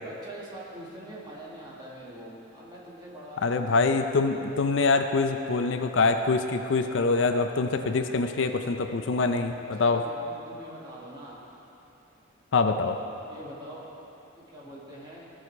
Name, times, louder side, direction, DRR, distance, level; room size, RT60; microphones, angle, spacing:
voice 1, 0.0-4.0 9.7-11.4 13.3-13.9 14.3-15.3, right 1 dB, 20° right, -6 dB, 2.0 m, -44 dB
voice 2, 3.4-10.0 12.5-13.0, left 3 dB, 65° left, 7 dB, 0.5 m, -25 dB
16.0 x 6.4 x 4.7 m, 2.9 s
head